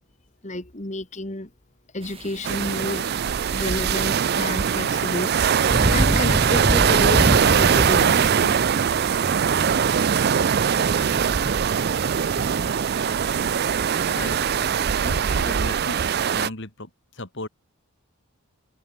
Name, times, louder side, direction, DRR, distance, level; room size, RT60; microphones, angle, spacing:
voice 1, 0.4-1.5 1.9-3.1 3.5-8.7 9.3-9.4, left 1 dB, 30° left, 1.8 m, -30 dB
sound 1, 2.0-15.0, right 1 dB, 25° right, 2.4 m, -30 dB
sound 2, 2.4-16.5, right 7 dB, 45° right, 0.4 m, -21 dB
voice 2, 14.1-14.4 15.0-17.5, left 2 dB, 55° left, 2.9 m, -36 dB
head